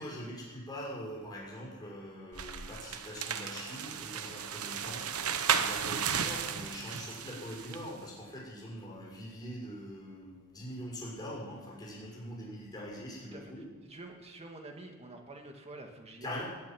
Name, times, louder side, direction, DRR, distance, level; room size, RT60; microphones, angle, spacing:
voice 1, 0.0-13.7 16.2-16.4, equal, 20° left, -4 dB, 6.2 m, -43 dB
sound 1, 2.3-7.9, right 7 dB, 85° right, 1.0 m, -34 dB
voice 2, 13.3-16.4, right 2 dB, 30° right, 2 dB, 2.1 m, -47 dB
19.0 x 8.2 x 9.2 m, 1.3 s
head